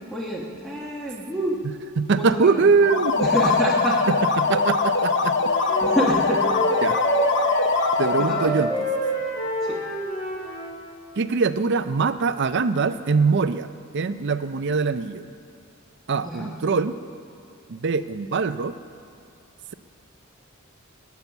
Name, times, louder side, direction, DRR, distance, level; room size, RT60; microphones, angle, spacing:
voice 1, 0.1-1.6 2.1-2.7 3.2-4.0 5.8-6.5 8.0-8.5 9.6-9.8 16.2-16.5, equal, ahead, -4 dB, 1.2 m, -27 dB
voice 2, 2.0-3.3 4.1-5.5 6.8-7.0 8.0-8.9 11.2-13.7 13.9-15.3 16.1-16.9 17.7-18.7, right 4 dB, 55° right, 12 dB, 0.5 m, -23 dB
sound 1, 2.8-8.5, left 4 dB, 55° left, 0.8 m, -22 dB
Wind instrument woodwind instrument, 5.4-10.8, right 1 dB, 30° left, 3.5 m, -27 dB
18.5 x 9.4 x 7.2 m, 2.4 s
head